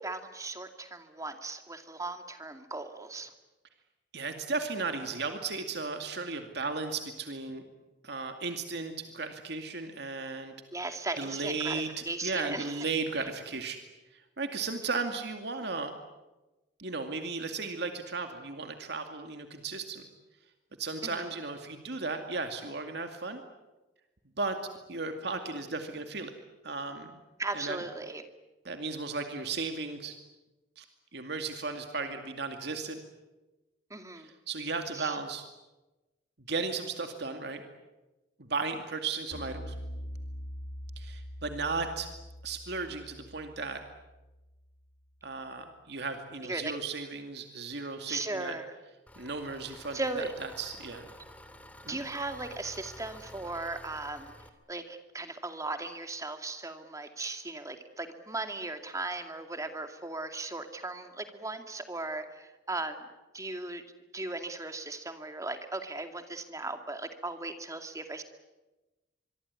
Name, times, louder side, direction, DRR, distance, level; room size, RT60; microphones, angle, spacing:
voice 1, 0.0-3.3 10.7-12.9 13.2-13.3 21.0-21.3 27.4-28.2 33.9-34.3 34.9-35.2 46.4-46.7 48.1-48.7 49.9-50.3 51.8-54.3 54.7-63.0 63.3-63.8 64.1-68.2, right 2 dB, 15° right, 7 dB, 2.3 m, -37 dB
voice 2, 4.1-7.6 8.0-10.5 11.2-13.8 14.1-15.9 16.8-20.0 20.8-23.4 24.4-24.6 24.9-26.3 26.6-27.1 27.5-27.8 28.6-30.2 30.8-30.9 31.1-33.0 34.2-35.4 36.5-37.6 38.4-39.7 41.0-42.1 42.4-43.8 45.2-48.6 49.2-50.2 50.6-51.1 51.9-52.0, right 4 dB, 65° right, 6 dB, 2.3 m, -35 dB
sound 1, 39.3-44.7, equal, 80° left, 1.7 m, -43 dB
Engine, 49.1-54.5, left 1 dB, 10° left, 2.4 m, -50 dB
25.0 x 23.5 x 9.8 m, 1.1 s
head